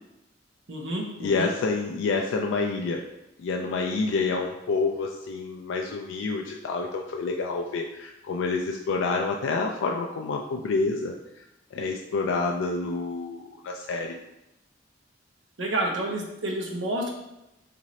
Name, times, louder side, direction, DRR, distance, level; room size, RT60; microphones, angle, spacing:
voice 1, 0.7-1.5 15.6-17.1, right 1 dB, 70° right, 0 dB, 0.7 m, -29 dB
voice 2, 1.2-3.0 3.4-11.4 11.7-14.2, left 3 dB, 80° left, 2 dB, 0.3 m, -28 dB
3.0 x 2.5 x 4.0 m, 0.91 s
head